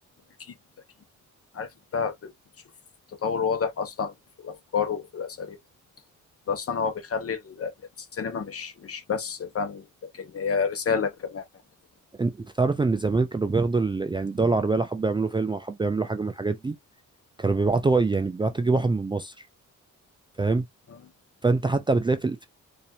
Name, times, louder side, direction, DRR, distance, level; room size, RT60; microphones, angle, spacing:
voice 1, 1.5-2.3 3.2-4.1 4.4-5.6 6.5-7.7 8.1-9.9 10.1-11.4, left 6 dB, 50° left, 1.2 m, -29 dB
voice 2, 12.2-16.7 17.4-19.5 20.4-20.6 21.4-22.5, right 3 dB, 15° right, 0.4 m, -24 dB
4.1 x 2.7 x 2.7 m
cardioid pair, 110°, 31 cm